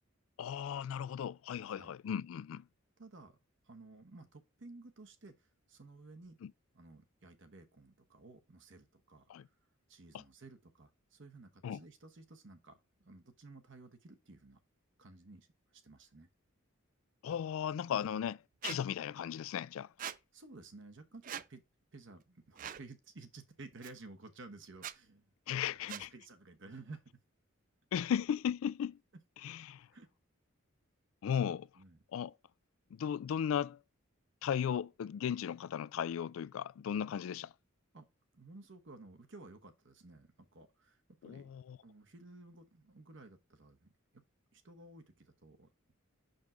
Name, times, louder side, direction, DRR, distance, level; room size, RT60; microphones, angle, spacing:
voice 1, 0.4-2.6 6.4-6.5 9.3-9.5 11.6-11.8 17.2-18.4 18.6-19.9 25.5-26.1 27.9-29.0 29.4-29.9 31.2-31.7 32.1-32.3 32.9-33.8 34.4-37.5 41.2-41.8, left 8 dB, 80° left, 0.3 m, -36 dB
voice 2, 1.6-1.9 3.0-3.4 3.6-6.4 6.7-9.3 9.9-14.6 15.0-16.3 18.0-18.2 20.3-21.6 21.9-25.3 25.9-27.2 29.9-30.1 31.4-32.0 37.9-38.1 38.3-41.5 41.8-44.2 44.5-45.9, right 3 dB, 60° right, 1.0 m, -54 dB
Squeak, 18.6-18.8 20.0-20.2 21.2-21.5 22.6-22.8 23.8-23.9 24.7-25.0 25.9-26.1, right 9 dB, 40° right, 0.3 m, -42 dB
6.1 x 5.2 x 3.7 m
head